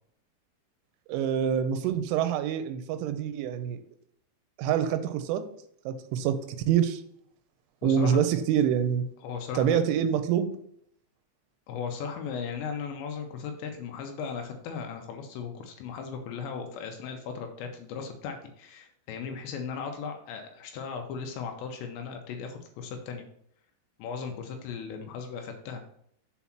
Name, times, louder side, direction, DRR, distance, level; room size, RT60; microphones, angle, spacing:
voice 1, 1.1-3.8 4.6-5.5 5.9-6.4 6.7-7.0 7.8-9.1 9.6-10.5, right 9 dB, 85° right, 9 dB, 3.0 m, -26 dB
voice 2, 7.8-8.2 9.2-9.8 11.7-23.3 24.0-25.8, left 6 dB, 75° left, 4 dB, 2.8 m, -37 dB
7.2 x 4.6 x 5.7 m, 0.68 s
omnidirectional pair, 5.6 m